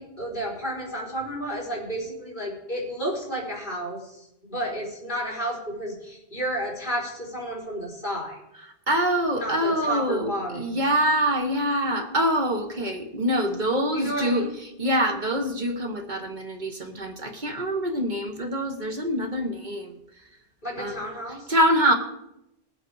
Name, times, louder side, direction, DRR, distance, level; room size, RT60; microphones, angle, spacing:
voice 1, 0.0-8.4 9.3-10.8 13.9-14.5 20.6-21.5, equal, 50° left, -3 dB, 4.1 m, -32 dB
voice 2, 8.9-14.4 14.8-20.0 20.8-21.0 21.5-21.9, equal, 50° right, 4 dB, 1.4 m, -25 dB
20.0 x 7.8 x 4.7 m, 0.85 s
omnidirectional pair, 1.0 m